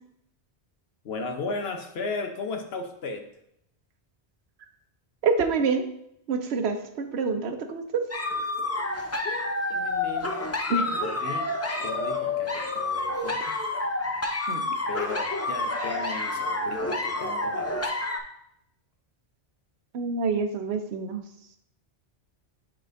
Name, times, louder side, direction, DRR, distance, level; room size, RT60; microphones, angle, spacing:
voice 1, 1.0-3.3 9.2-10.4 11.0-11.5 11.8-13.6 14.9-18.1, left 3 dB, 70° left, 4 dB, 1.0 m, -36 dB
voice 2, 5.2-5.8 6.3-8.0 10.7-10.9 14.5-14.8 19.9-21.2, right 4 dB, 75° right, 6 dB, 0.9 m, -27 dB
sound 1, 8.1-18.2, left 2 dB, 25° left, 0.3 m, -29 dB
8.7 x 4.3 x 2.6 m, 0.75 s
omnidirectional pair, 1.1 m